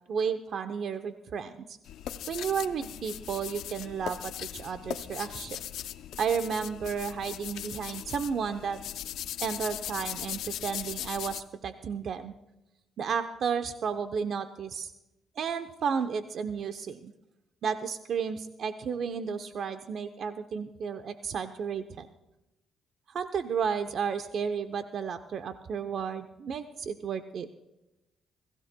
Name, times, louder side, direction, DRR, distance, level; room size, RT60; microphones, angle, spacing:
voice 1, 0.1-1.8 2.3-5.6 6.2-8.8 9.4-12.3 13.0-14.9 15.4-17.1 17.6-22.1 23.1-27.5, right 6 dB, 60° right, 9 dB, 0.7 m, -32 dB
sound 1, 1.9-11.4, left 11 dB, 85° left, 0.5 m, -39 dB
24.0 x 15.5 x 2.2 m, 0.95 s
cardioid pair, 90°, 0 cm